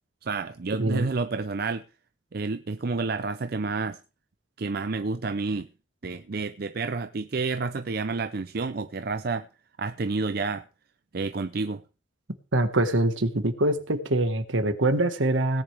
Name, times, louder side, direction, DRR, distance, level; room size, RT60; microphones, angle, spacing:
voice 1, 0.2-1.8 2.3-4.0 4.6-5.7 6.0-9.5 9.8-10.6 11.1-11.8, right 4 dB, 50° right, 0.5 m, -29 dB
voice 2, 12.5-15.6, right 1 dB, 75° right, 1.6 m, -24 dB
18.0 x 10.0 x 3.4 m
head